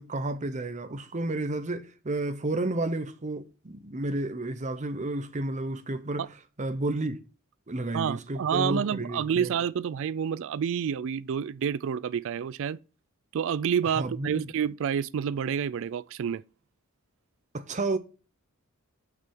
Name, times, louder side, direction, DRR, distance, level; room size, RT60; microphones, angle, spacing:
voice 1, 0.0-6.3 6.6-7.2 7.7-9.5 13.9-14.5 17.5-18.0, right 2 dB, 35° right, 0.8 m, -31 dB
voice 2, 7.9-12.8 13.3-16.4, right 7 dB, 65° right, 0.4 m, -29 dB
5.9 x 5.6 x 6.0 m
head